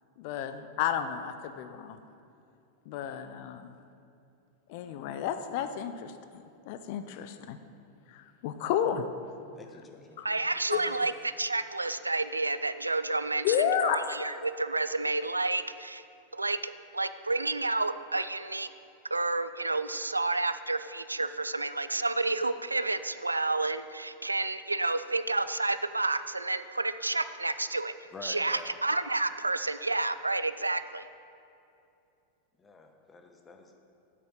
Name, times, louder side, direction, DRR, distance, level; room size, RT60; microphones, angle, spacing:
voice 1, 0.2-2.0 2.9-3.7 4.7-7.6 8.1-9.1 10.2-10.3 10.7-10.8 13.4-14.1, left 9 dB, 50° left, 10 dB, 0.5 m, -31 dB
voice 2, 9.5-10.4 10.7-11.1 28.1-28.8 32.6-33.7, left 3 dB, 15° left, 4 dB, 1.1 m, -48 dB
voice 3, 10.2-11.1 11.4-16.0 16.3-18.7 19.1-31.1, right 2 dB, 80° right, 13 dB, 0.3 m, -30 dB
8.3 x 6.8 x 7.4 m, 2.6 s
figure-of-eight pair, 90°, 0 cm